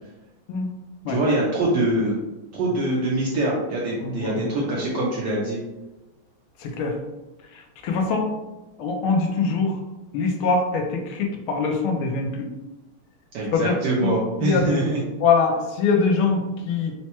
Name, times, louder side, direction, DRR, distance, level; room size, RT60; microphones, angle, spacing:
voice 1, 1.1-2.1 2.5-5.6 13.3-15.0, right 1 dB, 75° right, -4 dB, 1.0 m, -24 dB
voice 2, 4.0-4.5 6.6-7.0 7.5-8.3 8.8-9.8 10.1-12.5 13.5-13.7 14.0-14.1 14.4-14.8 15.2-16.9, left 4 dB, 80° left, 3 dB, 1.5 m, -23 dB
4.4 x 2.1 x 2.9 m, 1.0 s
omnidirectional pair, 2.4 m